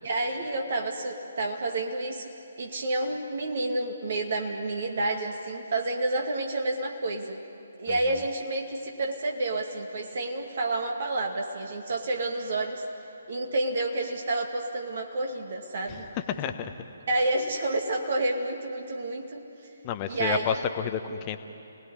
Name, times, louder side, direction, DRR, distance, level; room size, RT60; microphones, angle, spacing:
voice 1, 0.0-2.3 2.6-7.4 7.8-12.8 13.3-16.1 17.1-19.4 20.1-20.6, right 2 dB, 50° right, 2 dB, 2.3 m, -29 dB
voice 2, 15.9-16.7 19.8-21.4, left 8 dB, 25° left, 8 dB, 1.1 m, -30 dB
30.0 x 19.5 x 9.8 m, 2.7 s
figure-of-eight pair, 140°, 0 cm